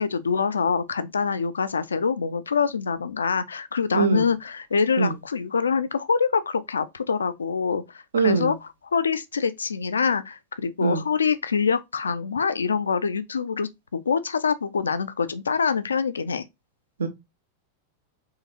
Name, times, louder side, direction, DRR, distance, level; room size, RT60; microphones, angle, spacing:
voice 1, 0.0-8.6 8.9-16.4, left 5 dB, 70° left, 0.4 m, -25 dB
voice 2, 3.9-4.3 5.0-5.1 8.1-8.5 10.8-11.1 17.0-17.1, right 4 dB, 70° right, 0.7 m, -22 dB
3.8 x 3.1 x 2.7 m
figure-of-eight pair, 90°, 0 cm